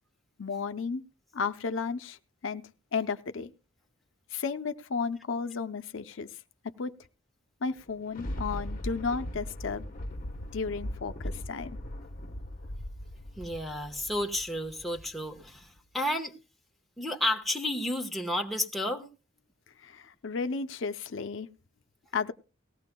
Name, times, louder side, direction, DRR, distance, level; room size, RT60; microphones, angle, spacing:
voice 1, 0.4-1.0 1.3-2.2 2.4-2.6 2.9-3.5 4.3-6.9 7.6-9.9 10.5-11.7 19.8-21.5 22.1-22.3, left 5 dB, 70° left, 9 dB, 0.6 m, -33 dB
Thunder, 7.7-15.3 15.8-15.9, left 1 dB, 45° left, 1.0 m, -39 dB
voice 2, 13.4-16.3 17.0-19.1, left 1 dB, ahead, 1 dB, 1.1 m, -31 dB
18.5 x 15.5 x 2.2 m, 0.33 s
head